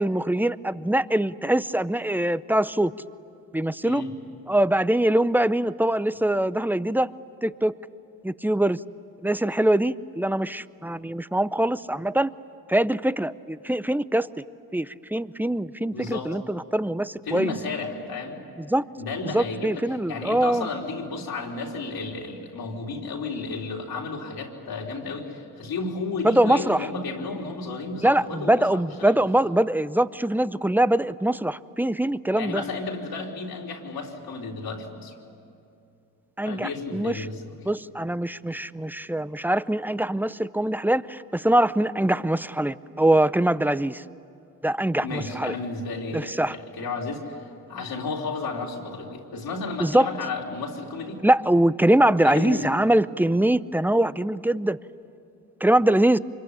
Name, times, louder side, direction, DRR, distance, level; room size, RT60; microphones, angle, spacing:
voice 1, 0.0-2.9 3.5-4.0 4.5-7.1 7.4-7.7 8.2-8.8 9.2-12.3 12.7-14.4 14.7-17.5 18.6-18.8 19.2-20.7 26.2-26.9 28.0-32.6 36.4-37.3 37.7-44.0 44.6-45.5 46.1-46.6 49.8-50.1 51.2-54.8 55.6-56.2, right 1 dB, 5° right, 17 dB, 0.6 m, -23 dB
voice 2, 3.8-4.1 15.9-16.4 17.3-18.4 19.0-19.8 20.1-29.2 32.3-35.1 36.4-37.6 45.0-51.2 52.2-52.7, left 3 dB, 70° left, 0 dB, 3.5 m, -33 dB
25.0 x 22.5 x 9.8 m, 2.6 s
supercardioid pair, 45°, 38 cm